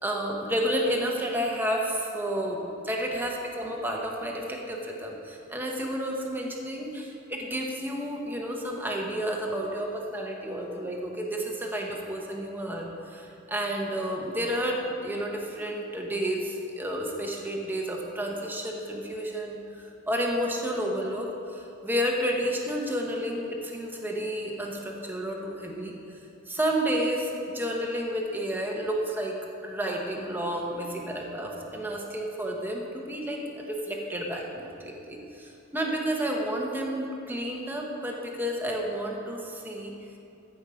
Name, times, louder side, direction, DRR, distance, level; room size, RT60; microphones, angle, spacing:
voice 1, 0.0-26.0 26.5-39.9, equal, 10° right, -1 dB, 1.1 m, -31 dB
14.0 x 5.5 x 5.0 m, 2.7 s
head